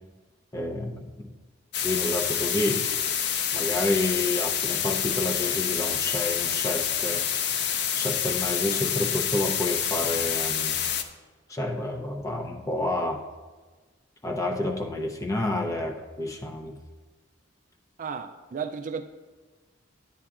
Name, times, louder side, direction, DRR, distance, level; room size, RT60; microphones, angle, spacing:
voice 1, 0.5-1.3 1.8-2.8 3.5-7.2 7.9-10.8 11.5-13.2 14.2-16.8, left 2 dB, 15° left, 0.6 m, -29 dB
sound 1, 1.7-11.0, left 8 dB, 60° left, 0.5 m, -27 dB
voice 2, 18.0-19.0, right 6 dB, 40° right, 0.3 m, -33 dB
9.6 x 8.7 x 2.4 m
head